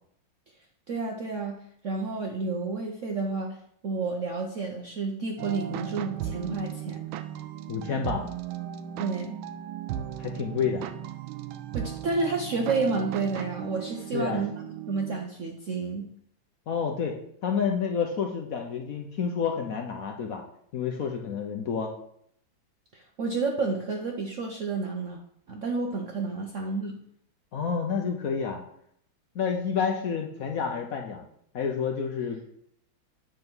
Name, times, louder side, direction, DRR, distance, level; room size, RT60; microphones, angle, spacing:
voice 1, 0.9-1.6 1.8-3.6 3.8-7.0 9.0-9.3 11.7-14.5 14.9-16.1 22.9-25.2 25.5-27.0, right 3 dB, 65° right, 2 dB, 0.8 m, -30 dB
sound 1, 5.4-15.3, right 10 dB, 90° right, 1.4 m, -36 dB
voice 2, 7.7-8.3 10.2-10.9 14.1-14.4 16.7-17.2 17.4-20.4 20.7-21.9 27.5-28.6 29.3-31.2 31.5-32.5, left 6 dB, 60° left, 2 dB, 1.0 m, -29 dB
7.7 x 3.6 x 6.1 m, 0.69 s
omnidirectional pair, 2.1 m